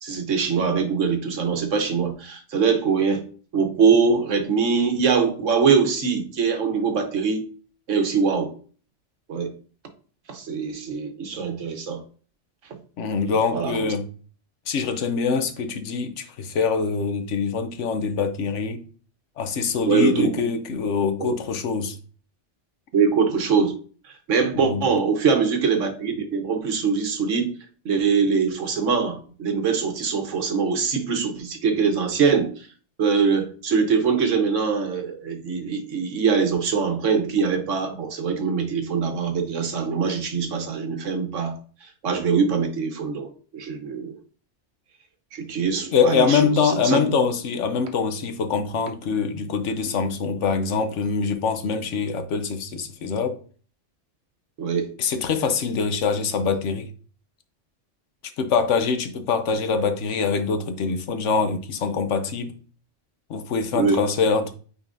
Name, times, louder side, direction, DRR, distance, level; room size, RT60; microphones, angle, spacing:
voice 1, 0.0-3.2 3.5-7.4 7.9-8.5 9.3-9.5 10.3-12.0 13.2-13.9 19.8-20.3 21.2-21.3 22.9-23.7 24.0-27.5 27.8-32.7 33.0-41.6 42.0-44.2 45.3-47.1 54.6-54.9 63.7-64.0, right 5 dB, 90° right, 1.4 m, -23 dB
voice 2, 13.0-14.1 14.7-18.8 19.4-22.0 24.5-24.9 45.9-53.4 55.0-56.9 58.4-62.6 63.3-64.5, left 5 dB, 75° left, 1.1 m, -24 dB
sound 1, 45.9-46.0 46.9-47.0 47.9-48.0 48.9-49.0 49.9-50.0, right 4 dB, 65° right, 1.1 m, -41 dB
8.9 x 4.1 x 2.6 m
omnidirectional pair, 1.2 m